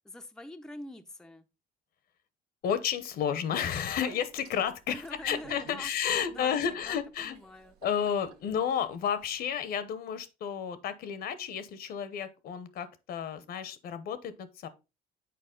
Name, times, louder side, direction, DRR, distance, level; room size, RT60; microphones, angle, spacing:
voice 1, 0.0-1.5 4.9-7.8, left 1 dB, 5° left, 0.5 m, -45 dB
voice 2, 2.6-7.4 7.8-14.7, left 8 dB, 65° left, 0.9 m, -32 dB
Speech, 3.5-9.5, right 8 dB, 70° right, 1.0 m, -53 dB
6.8 x 4.7 x 3.7 m
cardioid pair, 110°, 17 cm